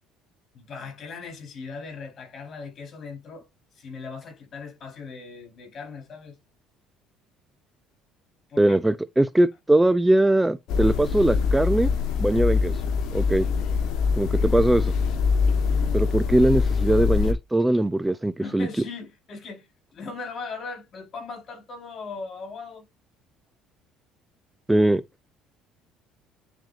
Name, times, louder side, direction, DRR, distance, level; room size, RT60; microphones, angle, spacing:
voice 1, 0.5-3.5 3.7-6.4 8.5-8.8 15.7-16.0 18.4-22.8, left 4 dB, 50° left, 4.4 m, -39 dB
voice 2, 8.6-11.9 12.2-12.7 13.1-13.5 14.2-14.9 15.9-18.7 24.7-25.0, right 1 dB, 10° right, 0.5 m, -21 dB
sound 1, 10.7-17.3, left 5 dB, 65° left, 1.5 m, -23 dB
10.0 x 4.4 x 2.6 m
supercardioid pair, 80°, 0 cm